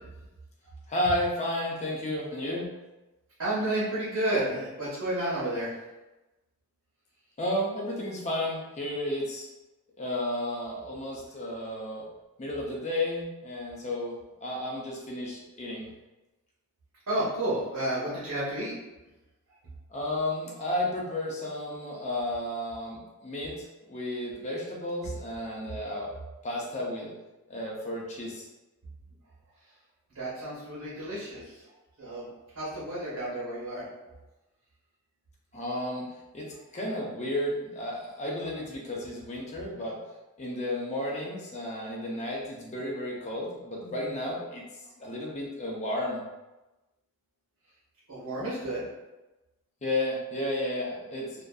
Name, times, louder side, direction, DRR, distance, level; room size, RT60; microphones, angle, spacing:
voice 1, 0.9-2.8 7.4-9.5 10.0-12.0 12.4-14.1 14.4-15.9 19.9-26.1 26.4-27.1 27.5-28.4 35.5-36.1 36.3-36.5 36.7-40.0 40.4-44.6 45.0-46.2 49.8-51.4, left 1 dB, 30° left, -3 dB, 0.5 m, -32 dB
voice 2, 3.4-5.7 17.1-18.7 30.1-32.3 32.5-33.9 45.0-45.1 48.1-48.8, right 1 dB, 75° right, -10 dB, 0.9 m, -31 dB
2.5 x 2.4 x 2.3 m, 1.1 s
head